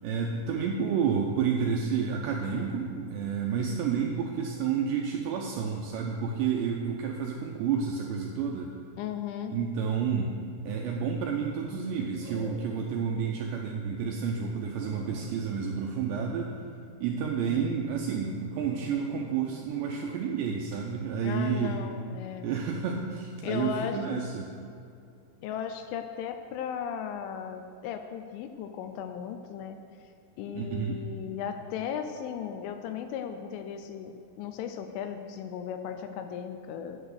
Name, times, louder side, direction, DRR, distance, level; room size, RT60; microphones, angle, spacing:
voice 1, 0.0-8.8 9.5-10.4 10.6-16.5 17.0-21.8 22.4-24.5 30.5-31.1, right 6 dB, 85° right, 1 dB, 2.5 m, -30 dB
voice 2, 9.0-9.5 21.2-22.5 23.4-24.2 25.4-29.8 30.4-37.0, left 8 dB, 85° left, 7 dB, 3.0 m, -36 dB
sound 1, 12.2-13.0 13.4-13.5 14.0-14.1 14.4-14.5 14.7-16.7 17.2-17.6 18.5-19.3 19.7-20.1 20.7-20.9, left 1 dB, 20° left, 0.7 m, -47 dB
9.9 x 8.1 x 6.5 m, 2.6 s
omnidirectional pair, 5.7 m